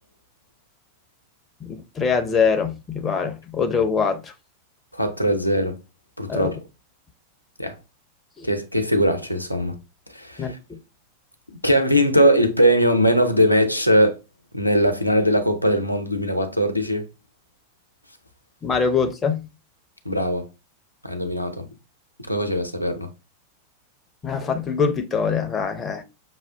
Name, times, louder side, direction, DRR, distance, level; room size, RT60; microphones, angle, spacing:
voice 1, 1.6-4.3 6.3-6.6 8.4-8.5 10.4-10.8 18.6-19.5 24.2-26.0, left 5 dB, 20° left, 0.7 m, -23 dB
voice 2, 4.9-5.8 6.2-6.5 7.6-7.7 8.4-9.8 10.1-10.6 11.6-14.2 14.5-17.0 20.0-20.5 21.0-21.6 22.3-23.1, equal, 90° left, 0.7 m, -20 dB
6.0 x 2.4 x 3.4 m
figure-of-eight pair, 90°, 0 cm